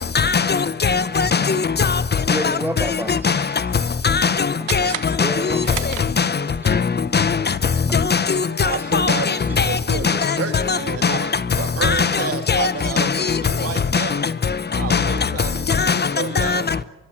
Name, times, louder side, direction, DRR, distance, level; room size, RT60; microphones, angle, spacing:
voice 1, 0.1-1.9 2.3-2.4 3.2-3.3 4.0-4.3 4.7-4.9 5.2-5.3 6.2-6.3 6.7-6.8 7.1-7.3 8.1-8.2 8.6-9.2 9.6-9.7 10.0-10.1 10.7-10.8 11.0-11.1 11.8-12.1 12.5-12.7 13.0-13.1 14.9-15.0 15.8-15.9 16.5-16.6, left 5 dB, 35° left, 0.9 m, -18 dB
voice 2, 2.3-3.6 5.2-6.0 6.6-6.8 7.6-8.0, right 1 dB, 5° right, 1.0 m, -30 dB
sound 1, 4.6-6.6, right 15 dB, 90° right, 1.3 m, -33 dB
voice 3, 8.6-14.3 14.7-16.7, right 7 dB, 50° right, 2.7 m, -30 dB
22.0 x 22.0 x 9.0 m
cardioid pair, 90°, 30 cm